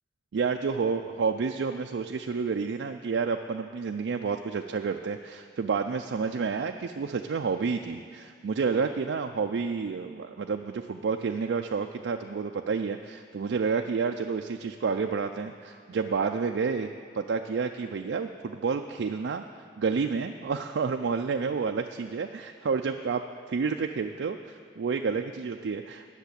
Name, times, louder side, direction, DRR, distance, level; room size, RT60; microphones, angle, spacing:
voice 1, 0.3-16.9 17.1-19.4 19.8-23.2 23.5-26.1, right 5 dB, 80° right, 5 dB, 0.4 m, -30 dB
10.5 x 6.6 x 8.3 m, 2.3 s
head